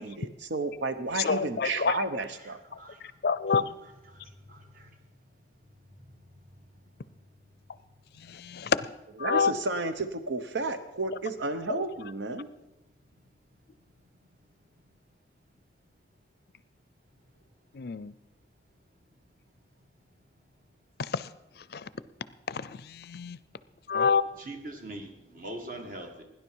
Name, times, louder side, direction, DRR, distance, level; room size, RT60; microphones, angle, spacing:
voice 1, 0.0-2.6 9.2-12.5, right 3 dB, 80° right, 9 dB, 0.9 m, -32 dB
voice 2, 1.1-2.0 2.7-3.7 8.2-8.9 9.2-9.5 17.7-18.1 21.0-21.3 21.6-21.9 22.5-23.4 23.9-24.2, left 5 dB, 55° left, 17 dB, 0.4 m, -28 dB
voice 3, 24.5-26.2, right 1 dB, 50° right, 3 dB, 1.9 m, -41 dB
17.0 x 10.5 x 4.7 m, 0.94 s
head